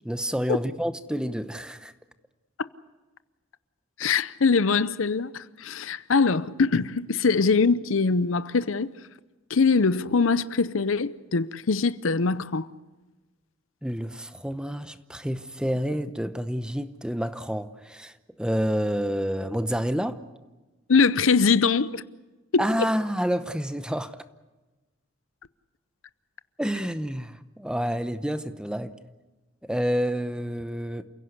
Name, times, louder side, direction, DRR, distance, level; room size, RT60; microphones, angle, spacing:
voice 1, 0.0-1.9 13.8-20.2 22.6-24.2 26.6-28.9 29.6-31.0, equal, 5° right, 0.8 m, -29 dB
voice 2, 4.0-8.9 9.5-12.7 20.9-22.0 22.5-22.7, left 4 dB, 80° left, 0.7 m, -22 dB
29.0 x 16.5 x 8.2 m
head